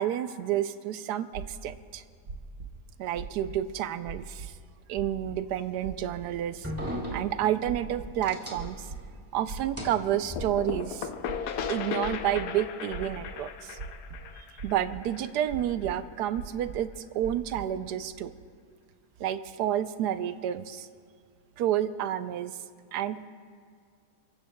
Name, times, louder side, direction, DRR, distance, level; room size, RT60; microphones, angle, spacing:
voice 1, 0.0-2.0 3.0-4.5 4.9-6.7 7.1-8.9 9.3-11.1 11.7-13.8 14.4-18.3 19.2-20.9 21.6-22.6 22.9-23.3, right 11 dB, 90° right, 12 dB, 1.2 m, -30 dB
sound 1, 1.3-1.8 2.2-2.7 3.1-3.7 4.1-4.5 5.0-5.4 5.8-6.2 6.7-7.2 7.6-8.2 8.5-9.0 9.5-10.0 10.4-10.8 11.2-12.4 12.9-13.3 13.8-14.3 14.6-15.0 15.5-15.9 16.3-16.9 17.2-17.6, right 4 dB, 65° right, 1.6 m, -40 dB
sound 2, 6.0-9.2 9.5-10.8, equal, 10° right, 2.1 m, -39 dB
sound 3, 10.4-15.9, left 7 dB, 75° left, 1.3 m, -36 dB
28.5 x 15.5 x 2.2 m, 2.1 s
omnidirectional pair, 1.7 m